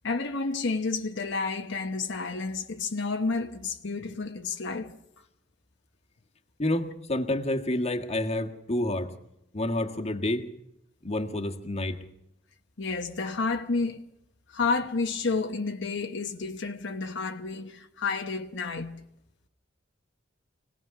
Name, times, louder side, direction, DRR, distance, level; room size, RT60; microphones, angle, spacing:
voice 1, 0.0-4.9 12.8-14.0 14.5-19.0, left 4 dB, 65° left, 1.1 m, -30 dB
voice 2, 6.6-9.2 9.5-10.5 11.0-12.0, left 1 dB, 35° left, 1.6 m, -29 dB
25.0 x 18.5 x 5.9 m
head